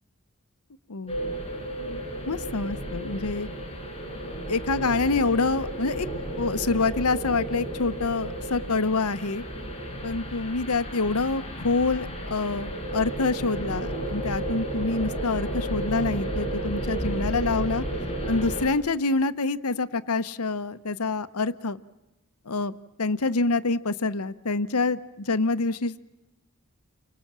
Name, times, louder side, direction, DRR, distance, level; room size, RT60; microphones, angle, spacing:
sound 1, 1.1-18.7, right 1 dB, 25° left, 5.4 m, -32 dB
voice 1, 2.3-3.5 4.5-6.1 6.3-9.4 10.0-17.8 18.3-21.8 22.5-22.7 23.0-26.0, left 3 dB, 85° left, 14 dB, 1.0 m, -26 dB
30.0 x 25.5 x 7.4 m, 1.0 s
head